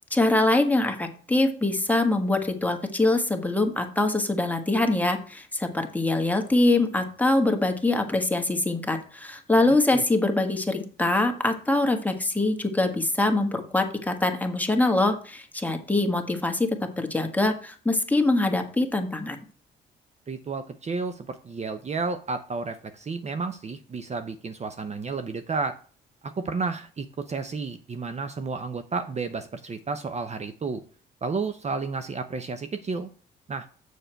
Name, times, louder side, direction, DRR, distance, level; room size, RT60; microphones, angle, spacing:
voice 1, 0.1-16.7 17.0-19.4, left 2 dB, 10° left, 4 dB, 1.4 m, -24 dB
voice 2, 20.3-25.8 26.2-30.8 31.2-33.1 33.5-33.7, right 4 dB, 35° right, 9 dB, 0.7 m, -31 dB
6.9 x 6.6 x 4.5 m, 0.41 s
cardioid pair, 90°, 20 cm